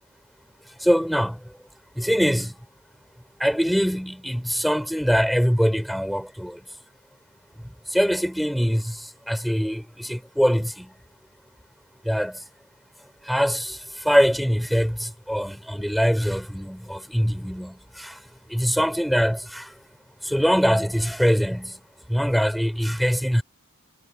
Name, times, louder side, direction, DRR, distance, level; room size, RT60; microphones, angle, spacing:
voice 1, 0.8-1.4 2.0-2.5 3.4-6.6 7.9-8.9 9.3-10.9 12.1-12.3 13.3-13.8 14.0-18.1 18.5-19.6 20.3-21.7 22.1-23.4, equal, ahead, 4.2 m, -23 dB
head